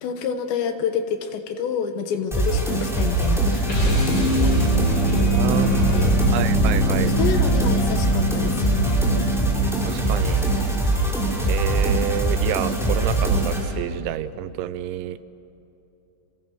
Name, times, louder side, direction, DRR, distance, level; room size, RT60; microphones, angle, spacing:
voice 1, 0.0-4.7 5.1-6.1 7.1-9.0, left 7 dB, 75° left, 7 dB, 3.4 m, -29 dB
sound 1, 2.3-13.6, right 2 dB, ahead, 5.0 m, -22 dB
sound 2, 3.7-10.1, equal, 30° left, 4.4 m, -23 dB
voice 2, 5.4-5.9 6.3-7.2 9.8-10.5 11.5-15.2, right 12 dB, 85° right, 14 dB, 3.0 m, -28 dB
30.0 x 28.0 x 6.5 m, 2.9 s
omnidirectional pair, 5.3 m